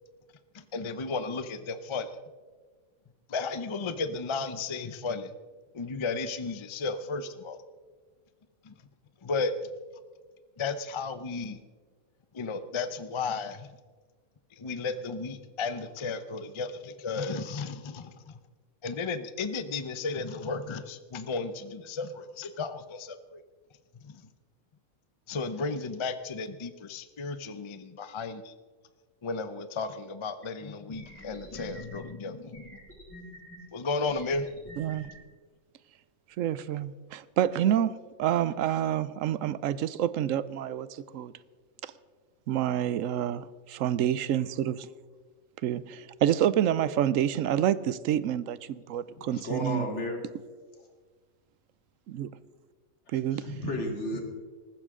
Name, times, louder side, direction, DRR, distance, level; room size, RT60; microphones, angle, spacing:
voice 1, 0.5-2.2 3.3-5.4 5.7-7.6 8.6-8.8 9.2-9.7 10.6-11.6 12.3-13.7 14.5-18.4 18.8-23.4 24.0-24.2 25.3-28.5 29.2-32.8 33.7-35.1, left 4 dB, 30° left, 11 dB, 0.5 m, -34 dB
sound 1, 30.4-30.5 30.9-32.0 32.5-33.6 34.1-35.1, equal, 10° left, 4.2 m, -48 dB
voice 2, 34.8-35.1 36.4-41.3 41.8-41.9 42.5-44.8 45.6-49.9 52.1-52.3 53.1-53.5, right 10 dB, 70° right, 17 dB, 1.0 m, -28 dB
voice 3, 49.2-50.2 53.3-54.2, left 1 dB, 55° left, 2 dB, 2.5 m, -33 dB
19.0 x 15.0 x 3.7 m, 1.5 s
omnidirectional pair, 1.5 m